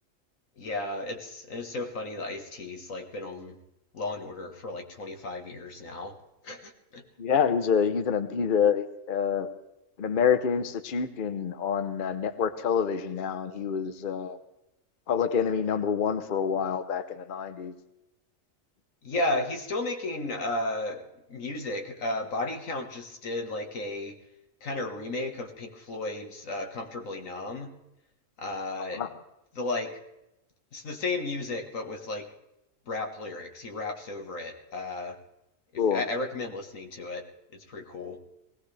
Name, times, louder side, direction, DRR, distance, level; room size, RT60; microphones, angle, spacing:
voice 1, 0.6-3.6 3.9-6.2 6.4-7.0 19.0-24.2 24.6-27.7 28.4-29.0 29.5-30.0 30.7-32.3 32.9-35.2 35.9-37.2 37.5-38.2, left 2 dB, 85° left, 4 dB, 1.8 m, -34 dB
voice 2, 7.2-9.5 10.0-14.4 15.1-17.7 28.9-29.1 35.8-36.0, left 7 dB, 45° left, 10 dB, 0.9 m, -27 dB
20.0 x 17.5 x 3.3 m, 0.90 s
omnidirectional pair, 1.3 m